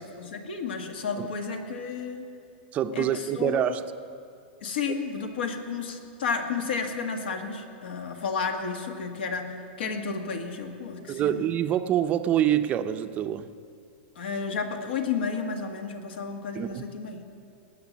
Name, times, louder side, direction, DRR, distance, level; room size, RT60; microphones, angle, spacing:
voice 1, 0.0-2.3 2.9-3.8 4.6-11.4 14.2-17.2, left 5 dB, 80° left, 1.9 m, -32 dB
voice 2, 2.7-3.9 11.1-13.5 16.6-16.8, right 10 dB, 25° right, 0.5 m, -26 dB
19.5 x 8.0 x 7.3 m
supercardioid pair, 145°, 6 cm